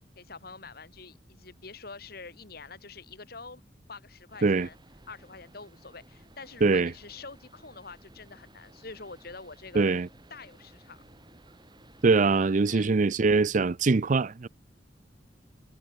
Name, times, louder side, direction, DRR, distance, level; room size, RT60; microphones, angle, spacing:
voice 1, 0.1-3.6 3.9-4.8 5.1-9.9 10.3-11.0 12.6-13.0, left 4 dB, 60° left, 3.4 m, -46 dB
sound 1, 4.3-12.8, right 2 dB, 25° right, 3.5 m, -57 dB
voice 2, 6.6-6.9 9.7-10.1 12.0-14.5, right 4 dB, 45° right, 0.5 m, -23 dB
head